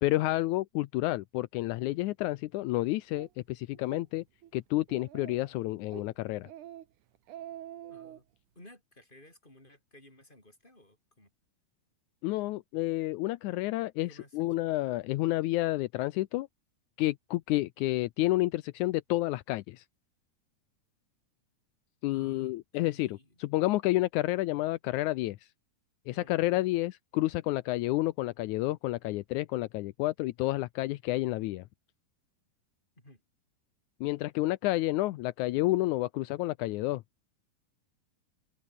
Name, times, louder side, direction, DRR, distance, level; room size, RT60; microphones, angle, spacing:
voice 1, 0.0-4.2 4.5-6.5 12.2-16.5 17.0-19.8 22.0-25.4 26.1-31.6 34.0-37.0, left 18 dB, 80° left, 1.8 m, -30 dB
Speech, 3.1-3.3 3.7-4.0 4.4-4.5 4.9-5.5 5.9-6.1 6.4-6.8 7.1-8.2, right 12 dB, 65° right, 2.7 m, -45 dB
voice 2, 7.9-8.2 8.6-11.3 14.0-14.5 22.1-22.5 22.8-23.4 26.1-26.3 33.0-33.2, left 1 dB, 10° left, 7.4 m, -56 dB
omnidirectional pair, 4.2 m